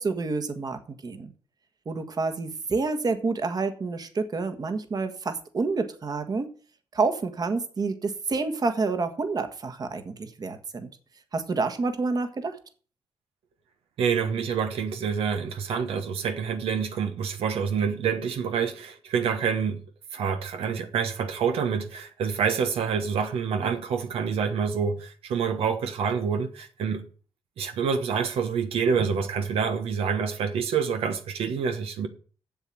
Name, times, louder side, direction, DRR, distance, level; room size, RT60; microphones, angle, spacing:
voice 1, 0.0-1.3 1.8-6.5 6.9-10.9 11.3-12.6, right 4 dB, 45° right, 1.6 m, -28 dB
voice 2, 14.0-19.8 20.1-27.0 27.6-32.1, right 6 dB, 85° right, 1.3 m, -27 dB
7.8 x 7.4 x 7.8 m
cardioid pair, 85°, 10 cm